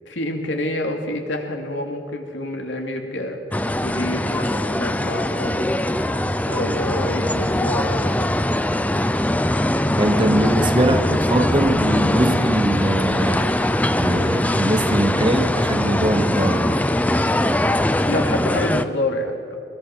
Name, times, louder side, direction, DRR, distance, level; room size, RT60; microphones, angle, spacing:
voice 1, 0.1-3.4 3.8-6.0 6.5-8.4 18.1-19.6, left 1 dB, 80° left, 2.7 m, -27 dB
sound 1, 3.5-18.8, left 1 dB, 10° left, 0.5 m, -21 dB
voice 2, 10.0-13.6 13.9-16.9, right 1 dB, 25° right, 0.9 m, -22 dB
23.0 x 20.5 x 6.1 m
head